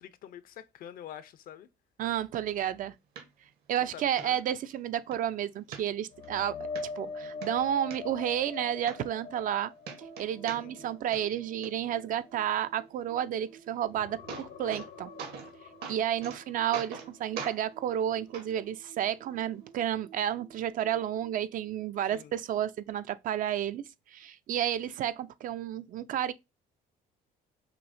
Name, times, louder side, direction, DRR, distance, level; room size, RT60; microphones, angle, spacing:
voice 1, 0.0-1.7 3.8-4.4 10.5-10.7 22.1-22.3, left 10 dB, 60° left, 0.5 m, -46 dB
voice 2, 2.0-2.9 3.7-6.7 7.0-9.7 10.2-15.1 15.9-26.3, right 10 dB, 55° right, 0.4 m, -31 dB
sound 1, 3.2-3.3 3.7-3.8 4.2-4.3 4.7-5.2 5.7-6.3 6.8-6.9 7.2-8.0 8.5-8.6 8.9-9.6 9.8-10.9 11.1-11.7 13.7-13.8 14.1-14.9 15.2-15.5 15.8-16.4 16.7-17.1 17.4-17.6 18.3-18.5 19.4-19.5, right 6 dB, 70° right, 1.1 m, -41 dB
sound 2, 6.1-13.5 13.9-17.7 18.1-18.3 21.7-21.8, left 4 dB, 80° left, 0.8 m, -44 dB
sound 3, 10.0-22.5, right 8 dB, 85° right, 1.0 m, -56 dB
5.7 x 2.0 x 2.5 m
cardioid pair, 110°, 17 cm